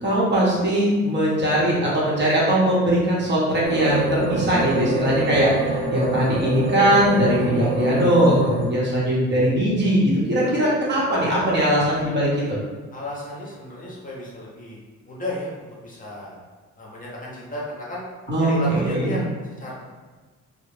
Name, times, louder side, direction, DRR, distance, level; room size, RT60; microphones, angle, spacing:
voice 1, 0.0-12.6 18.3-19.1, equal, 35° right, -6 dB, 0.9 m, -20 dB
sound 1, 3.6-8.7, right 2 dB, 85° right, 0.7 m, -26 dB
voice 2, 12.9-14.8 15.1-16.4 16.8-18.0 18.4-19.3 19.6-19.7, left 1 dB, 25° left, -5 dB, 0.7 m, -34 dB
2.3 x 2.1 x 3.1 m, 1.3 s
cardioid pair, 90°, 30 cm